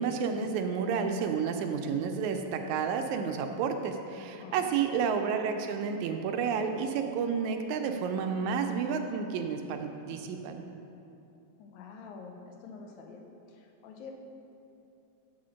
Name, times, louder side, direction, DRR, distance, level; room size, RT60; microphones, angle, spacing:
voice 1, 0.0-10.6, right 6 dB, 80° right, 5 dB, 1.8 m, -31 dB
voice 2, 4.4-4.8 11.6-13.2 13.5-14.1, left 5 dB, 75° left, 2 dB, 2.0 m, -47 dB
8.5 x 4.4 x 6.2 m, 2.7 s
omnidirectional pair, 3.6 m